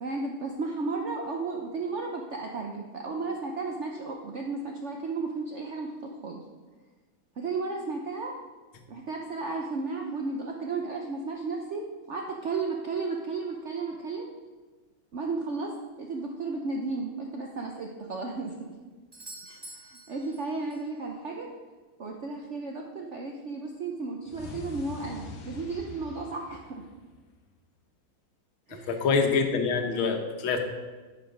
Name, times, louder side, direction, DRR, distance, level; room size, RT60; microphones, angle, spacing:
voice 1, 0.0-6.4 7.4-8.4 8.9-14.3 15.1-18.7 19.6-21.5 22.0-26.9 28.7-29.1, right 3 dB, 65° right, 1 dB, 0.7 m, -34 dB
Doorbell, 19.1-21.0 25.0-25.1, right 1 dB, 30° right, 0.4 m, -47 dB
sound 1, 24.3-27.4, left 4 dB, 60° left, 1.4 m, -44 dB
voice 2, 28.9-30.6, left 5 dB, 85° left, 5 dB, 1.8 m, -25 dB
9.8 x 5.9 x 5.2 m, 1.3 s
omnidirectional pair, 2.2 m